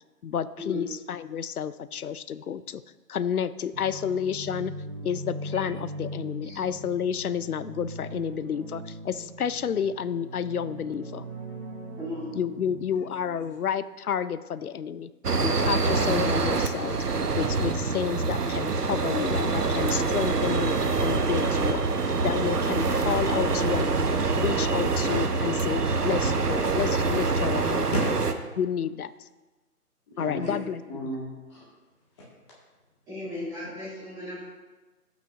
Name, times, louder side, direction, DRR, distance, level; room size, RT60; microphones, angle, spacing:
voice 1, 0.2-2.8 3.1-4.7 5.0-11.2 12.3-15.1 15.4-17.0 17.4-21.8 22.2-24.0 24.3-27.9 28.6-29.1 30.2-30.8, left 8 dB, 70° left, 16 dB, 0.5 m, -30 dB
sound 1, 3.7-12.8, right 1 dB, 55° right, 2.6 m, -40 dB
voice 2, 12.0-12.3 30.1-30.6 33.1-34.4, left 1 dB, 5° right, -12 dB, 2.2 m, -36 dB
voice 3, 12.9-13.4 27.9-28.4 30.1-30.5 30.9-31.7, equal, 15° left, -6 dB, 2.1 m, -34 dB
sound 2, 15.2-28.3, right 4 dB, 75° right, 0.9 m, -25 dB
13.5 x 6.1 x 2.7 m, 1.2 s
figure-of-eight pair, 150°, 47 cm